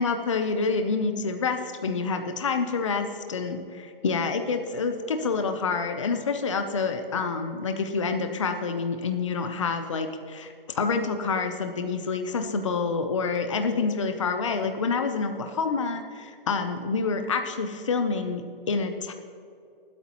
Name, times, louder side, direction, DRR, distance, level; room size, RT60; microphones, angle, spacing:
voice 1, 0.0-19.1, left 4 dB, 30° left, 6 dB, 0.6 m, -27 dB
24.0 x 8.4 x 3.0 m, 2.4 s
hypercardioid pair, 175°, 29 cm